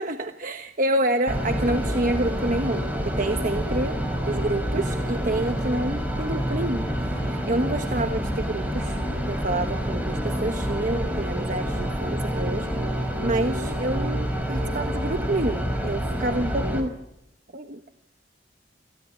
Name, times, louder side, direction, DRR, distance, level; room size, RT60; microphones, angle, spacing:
voice 1, 0.0-4.0 4.2-9.0 9.3-12.7 13.2-17.0 17.5-17.9, right 1 dB, 45° right, 7 dB, 1.2 m, -28 dB
sound 1, 1.3-16.8, equal, 10° right, 4.9 m, -27 dB
27.0 x 16.5 x 9.7 m, 0.84 s
head